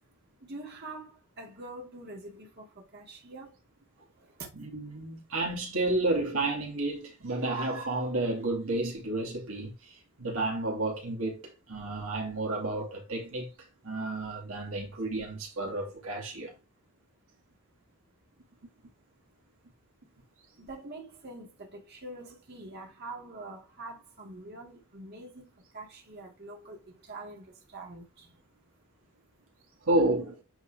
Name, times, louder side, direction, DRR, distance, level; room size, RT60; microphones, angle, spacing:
voice 1, 0.4-2.7 2.9-3.6 4.2-4.5 20.6-28.3, right 2 dB, 50° right, 2.3 m, -45 dB
voice 2, 4.5-13.5 13.8-16.5 29.8-30.4, right 2 dB, 80° right, 2.7 m, -31 dB
9.0 x 3.9 x 3.4 m
head